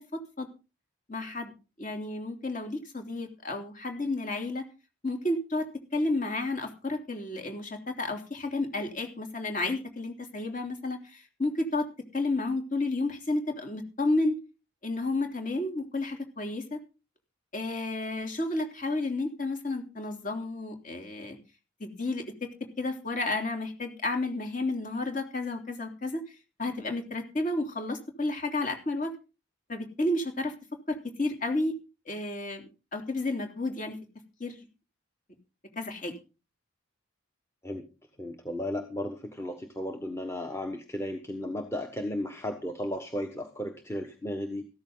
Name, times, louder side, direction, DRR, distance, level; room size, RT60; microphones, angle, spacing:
voice 1, 0.1-0.5 1.1-1.5 1.8-4.6 5.0-5.7 5.9-14.4 14.8-16.8 17.5-21.4 21.8-22.5 22.8-26.2 26.6-29.1 29.7-30.5 30.9-31.8 32.0-32.6 32.9-34.0 34.4-34.7 35.7-36.1, left 2 dB, 40° left, 5 dB, 3.4 m, -31 dB
voice 2, 38.2-44.6, left 1 dB, 15° left, 4 dB, 1.3 m, -34 dB
15.0 x 13.5 x 4.0 m, 0.31 s
head